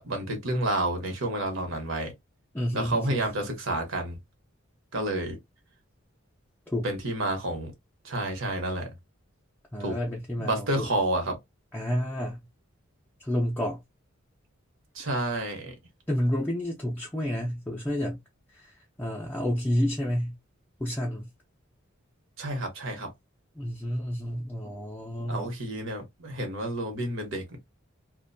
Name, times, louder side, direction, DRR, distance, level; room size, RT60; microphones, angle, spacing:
voice 1, 0.0-2.1 2.7-4.2 4.9-5.4 6.8-7.7 8.0-8.9 9.8-10.0 10.4-11.4 14.9-15.7 22.4-23.1 25.3-27.6, right 1 dB, 70° right, 1.0 m, -30 dB
voice 2, 2.5-3.3 6.7-6.9 9.7-10.9 11.7-12.4 13.2-13.8 16.1-18.2 18.5-20.3 20.8-21.3 23.6-25.5, equal, 10° left, 0.5 m, -30 dB
2.5 x 2.1 x 2.6 m
head